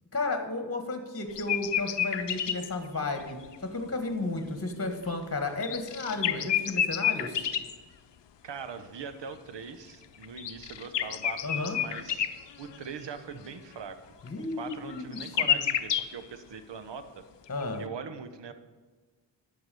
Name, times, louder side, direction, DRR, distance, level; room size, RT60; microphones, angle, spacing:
voice 1, 0.1-7.5 11.4-11.8 14.2-15.6 17.5-17.8, left 2 dB, 30° left, 6 dB, 1.5 m, -33 dB
sound 1, 1.3-2.7 3.5-3.6 5.5-7.7 10.2-12.3 12.6-12.8 14.3-14.4 14.7-16.0, left 10 dB, 70° left, 0.7 m, -29 dB
voice 2, 8.4-12.3 12.6-14.0 14.4-17.2 17.8-18.5, right 6 dB, 70° right, 10 dB, 1.0 m, -41 dB
11.0 x 5.9 x 6.9 m, 1.3 s
wide cardioid pair, 75°, 45 cm